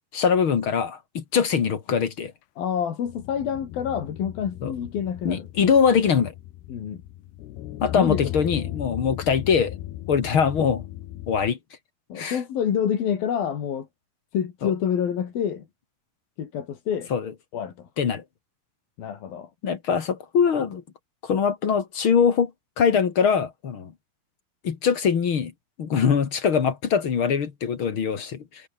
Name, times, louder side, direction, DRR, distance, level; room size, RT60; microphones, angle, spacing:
voice 1, 0.1-2.3 4.6-4.7 5.2-6.3 7.8-9.8 10.1-10.8 11.3-11.6 12.2-12.4 14.6-14.7 17.1-17.3 18.0-18.2 19.6-20.8 21.2-22.5 22.8-23.9 24.6-25.5 25.8-28.6, left 6 dB, 45° left, 2.0 m, -22 dB
voice 2, 2.6-5.5 6.7-7.0 7.9-8.2 8.5-8.6 12.1-13.9 14.3-15.7 16.4-17.1 17.5-17.9 19.0-19.5, left 8 dB, 70° left, 4.4 m, -27 dB
sound 1, 3.1-11.5, left 14 dB, 90° left, 3.3 m, -37 dB
omnidirectional pair, 4.5 m